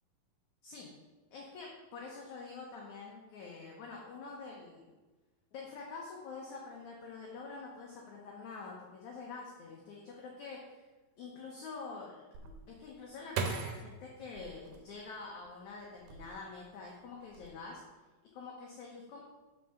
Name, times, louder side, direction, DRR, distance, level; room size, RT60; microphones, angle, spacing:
voice 1, 1.3-4.9 5.5-10.9 11.2-12.1 12.7-17.8 18.3-19.2, left 4 dB, 65° left, -2 dB, 2.1 m, -46 dB
sound 1, 12.3-15.4 16.0-16.7 17.0-17.5, right 5 dB, 85° right, 2.7 m, -40 dB
6.0 x 5.9 x 6.6 m, 1.2 s
omnidirectional pair, 4.3 m